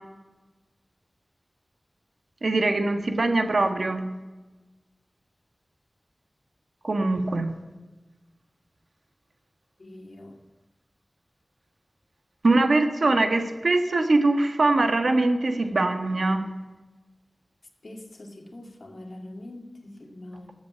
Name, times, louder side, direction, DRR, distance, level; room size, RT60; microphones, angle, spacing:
voice 1, 2.4-4.0 6.8-7.5 12.4-16.4, right 2 dB, 75° right, 7 dB, 1.5 m, -22 dB
voice 2, 9.8-10.4 17.8-20.5, left 1 dB, 65° left, 4 dB, 2.1 m, -43 dB
13.5 x 8.0 x 7.6 m, 1.2 s
wide cardioid pair, 50°, 0 cm